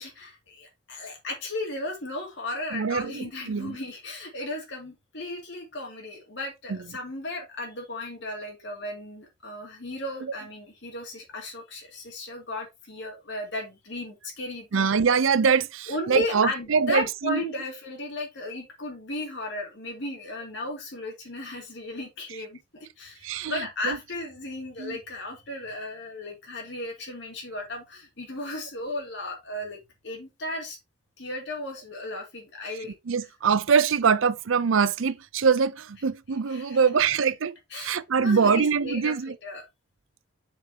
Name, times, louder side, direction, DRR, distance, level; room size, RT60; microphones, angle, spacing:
voice 1, 0.0-14.9 15.9-30.8 31.2-32.9 36.5-36.9 37.7-39.6, left 2 dB, 55° left, 2.5 m, -35 dB
voice 2, 2.7-3.8 6.7-6.8 14.7-17.4 23.2-24.0 24.8-25.0 33.1-39.3, right 6 dB, 70° right, 0.5 m, -24 dB
7.0 x 6.7 x 2.8 m
head